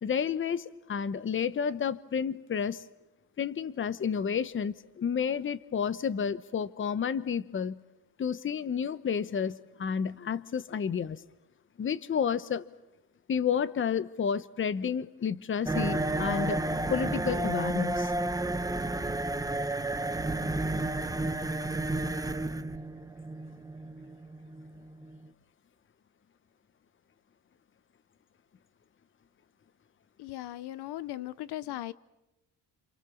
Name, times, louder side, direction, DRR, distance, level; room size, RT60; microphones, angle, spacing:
voice 1, 0.0-2.8 3.4-7.8 8.2-11.2 11.8-12.7 13.3-16.6 16.9-18.1, left 7 dB, 30° left, 16 dB, 1.0 m, -31 dB
sound 1, 15.7-25.3, right 2 dB, 10° right, 1.0 m, -31 dB
voice 2, 30.2-31.9, left 14 dB, 75° left, 18 dB, 1.0 m, -38 dB
29.0 x 28.5 x 7.2 m, 0.94 s
cardioid pair, 130°, 40 cm